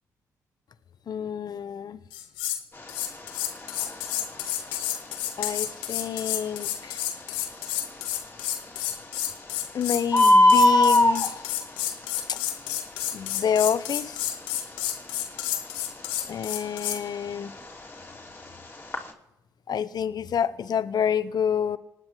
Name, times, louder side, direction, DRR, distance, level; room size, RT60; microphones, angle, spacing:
voice 1, 1.1-2.0 5.4-7.0 9.7-11.4 12.3-12.4 13.1-14.2 16.3-17.5 19.7-21.8, left 8 dB, 55° left, 14 dB, 0.9 m, -28 dB
sound 1, 2.1-2.6 2.9-17.0, left 12 dB, 80° left, 1.1 m, -30 dB
Bird, 2.7-19.1, left 1 dB, 25° left, 2.8 m, -26 dB
26.5 x 9.6 x 3.2 m, 0.92 s
hypercardioid pair, 45°, 8 cm